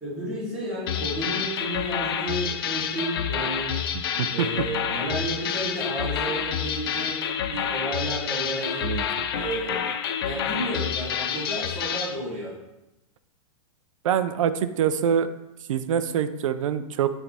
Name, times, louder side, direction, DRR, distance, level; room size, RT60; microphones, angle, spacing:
voice 1, 0.0-3.8 4.3-9.8 10.2-12.5, right 1 dB, 5° right, -11 dB, 2.3 m, -32 dB
sound 1, 0.9-12.2, left 8 dB, 45° left, 0.4 m, -28 dB
voice 2, 3.9-4.5 8.8-9.1 14.0-15.3 15.7-17.1, right 8 dB, 70° right, 11 dB, 0.6 m, -25 dB
8.4 x 3.4 x 4.1 m, 0.95 s
supercardioid pair, 180°, 17 cm